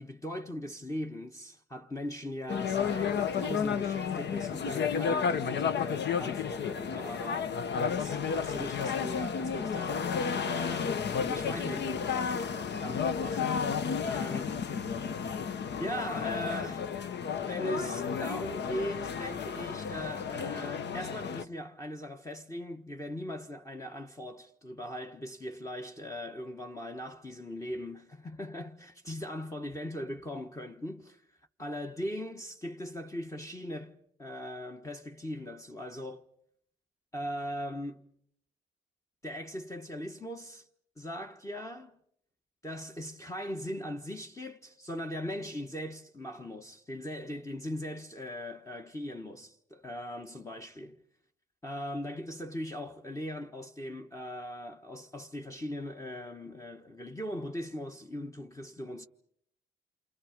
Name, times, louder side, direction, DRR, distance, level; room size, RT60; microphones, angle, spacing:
voice 1, 0.0-7.5 7.9-13.5 14.0-15.0 15.8-17.0 17.4-31.3 31.6-36.3 37.1-38.1 39.2-40.7 41.0-42.0 42.6-51.0 51.6-59.1, equal, 15° left, 1.3 m, -39 dB
sound 1, 2.5-21.4, left 6 dB, 60° left, 1.1 m, -32 dB
28.5 x 27.0 x 5.2 m
cardioid pair, 90°, 20 cm